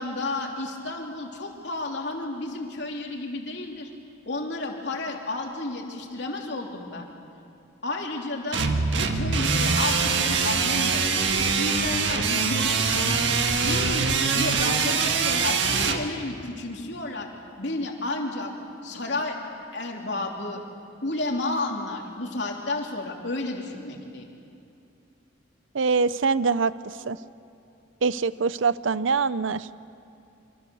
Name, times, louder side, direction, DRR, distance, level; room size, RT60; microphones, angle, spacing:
voice 1, 0.0-3.9 4.2-7.1 7.8-13.2 13.6-14.1 14.3-17.3 17.6-18.5 18.8-19.4 19.7-20.6 21.0-24.3, left 2 dB, 60° left, 1 dB, 3.2 m, -32 dB
sound 1, 8.5-16.0, right 5 dB, 65° right, 1.7 m, -23 dB
voice 2, 25.7-26.7 27.1-27.2 28.0-29.7, right 4 dB, 85° right, 16 dB, 0.6 m, -23 dB
27.0 x 24.5 x 7.1 m, 2.6 s
head